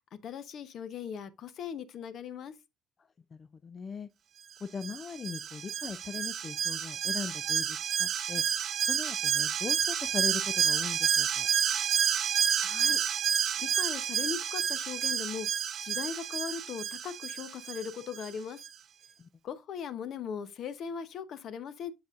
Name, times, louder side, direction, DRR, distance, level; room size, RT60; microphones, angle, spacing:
voice 1, 0.2-2.5 12.6-15.5 15.8-18.6 19.4-21.9, left 7 dB, 45° left, 0.8 m, -39 dB
voice 2, 3.3-4.1 4.6-8.4 8.8-11.5 19.2-19.3, left 5 dB, 25° left, 0.4 m, -39 dB
Alarm, 4.8-18.3 18.6-18.7, right 8 dB, 40° right, 0.6 m, -30 dB
7.9 x 6.8 x 2.5 m
cardioid pair, 160°, 0 cm